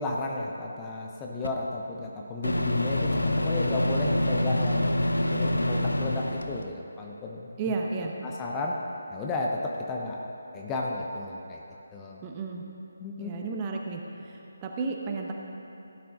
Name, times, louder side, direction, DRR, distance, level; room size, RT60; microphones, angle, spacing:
voice 1, 0.0-4.9 5.3-7.5 8.2-8.8 9.1-10.2 10.5-11.6 11.9-12.2 13.0-13.3, left 2 dB, 15° left, -1 dB, 0.7 m, -33 dB
Microwave oven, 1.4-1.5 2.4-6.7, left 1 dB, 75° left, 0.7 m, -26 dB
voice 2, 7.6-8.1 12.2-12.6 13.2-15.3, right 4 dB, 20° right, 1 dB, 0.9 m, -33 dB
16.0 x 9.4 x 3.7 m, 3.0 s
figure-of-eight pair, 150°, 0 cm